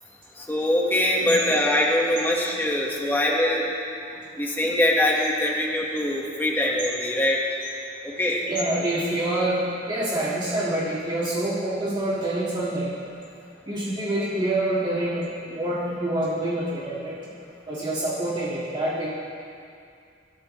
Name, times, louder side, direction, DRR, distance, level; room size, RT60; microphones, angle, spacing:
voice 1, 0.4-3.7 4.4-7.6 8.0-8.4, left 1 dB, 10° left, -3 dB, 1.6 m, -23 dB
voice 2, 8.5-12.9 13.6-17.2 17.7-19.1, right 1 dB, 25° right, -8 dB, 2.1 m, -26 dB
24.5 x 12.5 x 3.3 m, 2.5 s
head